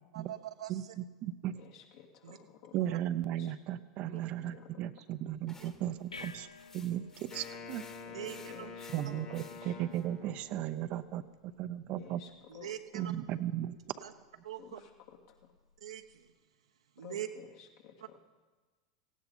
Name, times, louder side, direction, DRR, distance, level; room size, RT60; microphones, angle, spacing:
voice 1, 0.1-0.9 2.2-2.4 2.8-2.9 5.6-5.7 8.1-8.7 9.1-9.2 12.5-13.1 14.0-14.1 14.4-14.8 15.8-16.3 17.0-17.3, right 11 dB, 75° right, 7 dB, 1.1 m, -43 dB
voice 2, 0.7-1.6 2.7-6.5 6.7-7.9 8.9-12.2 12.9-13.7, right 12 dB, 45° right, 11 dB, 0.8 m, -36 dB
voice 3, 1.5-3.0 3.4-3.5 4.1-4.7 6.4-6.5 8.0-8.9 9.6-9.8 12.0-13.1 14.6-15.5 17.0-18.2, left 8 dB, 60° left, 1 dB, 2.6 m, -54 dB
sound 1, 5.3-16.3, left 4 dB, 90° left, 0.6 m, -57 dB
sound 2, 5.5-10.0, left 3 dB, 20° left, 1.6 m, -57 dB
Wind instrument woodwind instrument, 7.3-10.8, left 5 dB, 40° left, 2.4 m, -47 dB
17.5 x 16.5 x 4.0 m, 1.3 s
figure-of-eight pair, 90°, 3 cm